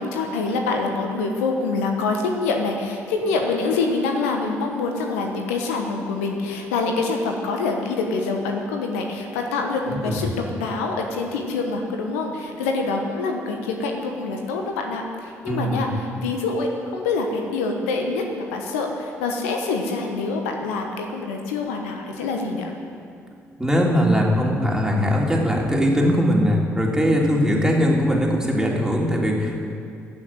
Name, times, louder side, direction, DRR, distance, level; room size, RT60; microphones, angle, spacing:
voice 1, 0.0-22.7 27.2-27.7, left 3 dB, 80° left, 3 dB, 1.2 m, -26 dB
voice 2, 9.9-10.2 15.5-15.9 23.6-29.7, equal, 10° right, -2 dB, 3.3 m, -20 dB
15.0 x 6.4 x 9.1 m, 2.3 s
hypercardioid pair, 45°, 7 cm